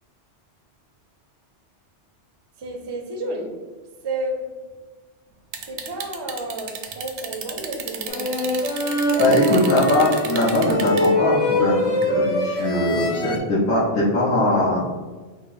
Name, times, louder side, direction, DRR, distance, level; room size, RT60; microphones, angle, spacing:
voice 1, 2.6-3.5 4.0-4.4 5.7-8.6, right 1 dB, 35° right, 3 dB, 0.4 m, -31 dB
sound 1, 5.5-11.1 12.0-12.1, right 7 dB, 80° right, 0.9 m, -33 dB
sound 2, 8.1-13.4, left 1 dB, 40° left, 0.5 m, -23 dB
voice 2, 9.2-14.8, left 1 dB, 70° left, -11 dB, 1.4 m, -20 dB
4.7 x 2.0 x 4.1 m, 1.3 s
omnidirectional pair, 1.2 m